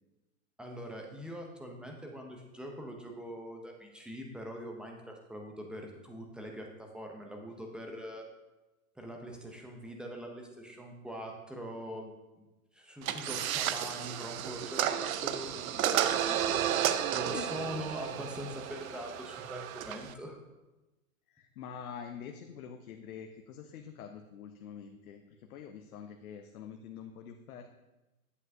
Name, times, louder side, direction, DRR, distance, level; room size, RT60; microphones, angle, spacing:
voice 1, 0.6-8.3 9.0-12.5 12.7-16.4 17.1-20.4, equal, ahead, 1 dB, 0.5 m, -43 dB
sound 1, 13.0-20.1, right 10 dB, 70° right, 0.6 m, -32 dB
voice 2, 15.7-16.1 17.3-17.5 21.3-27.7, left 8 dB, 75° left, 5 dB, 0.7 m, -46 dB
8.3 x 7.4 x 2.6 m, 1.1 s
hypercardioid pair, 125°, 44 cm